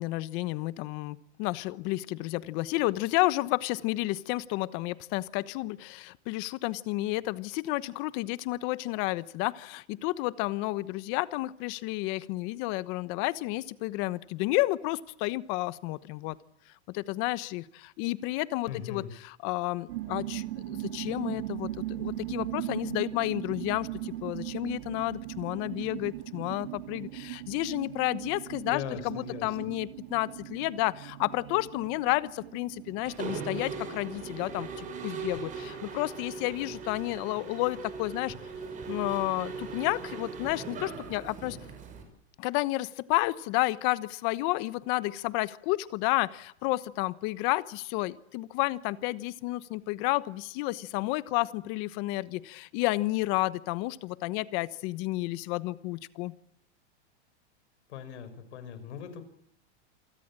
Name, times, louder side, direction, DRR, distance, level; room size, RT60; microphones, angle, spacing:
voice 1, 0.0-16.4 16.9-38.3 38.9-41.6 42.4-56.3, left 19 dB, 35° left, 17 dB, 1.1 m, -31 dB
voice 2, 18.7-19.1 28.7-29.5 57.9-59.2, left 9 dB, 80° left, 12 dB, 6.0 m, -39 dB
sound 1, 19.9-36.5, right 15 dB, 75° right, 1.6 m, -39 dB
Mechanisms, 33.0-42.0, right 4 dB, 20° right, 5.9 m, -39 dB
28.0 x 19.0 x 8.9 m, 0.74 s
supercardioid pair, 165°, 34 cm